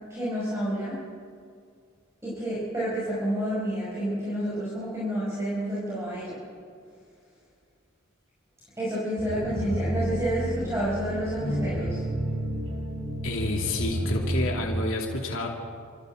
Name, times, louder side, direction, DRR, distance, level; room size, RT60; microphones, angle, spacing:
voice 1, 0.1-1.0 2.2-6.4 8.8-12.0, equal, 15° right, -8 dB, 5.4 m, -29 dB
sound 1, 9.2-14.7, right 1 dB, 85° right, 6.8 m, -30 dB
voice 2, 13.2-15.5, left 2 dB, 65° left, 0 dB, 2.7 m, -29 dB
28.0 x 14.0 x 7.8 m, 2.3 s
head